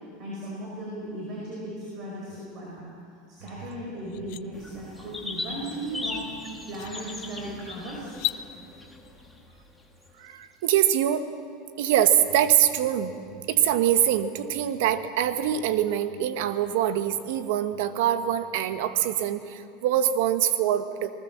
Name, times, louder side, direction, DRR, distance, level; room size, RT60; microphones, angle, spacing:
voice 1, 0.2-2.9 3.3-6.4 6.7-8.2, right 1 dB, 35° right, -4 dB, 5.0 m, -36 dB
sound 1, 3.5-3.6 4.0-4.4 6.1-6.2 6.7-6.9 8.1-8.4, left 19 dB, 50° left, 0.6 m, -33 dB
sound 2, 4.5-10.1, left 2 dB, 5° left, 1.7 m, -39 dB
voice 2, 10.2-11.3 11.8-13.1 13.5-21.1, right 10 dB, 65° right, 10 dB, 1.4 m, -24 dB
28.5 x 19.5 x 7.4 m, 2.4 s
supercardioid pair, 175°, 0 cm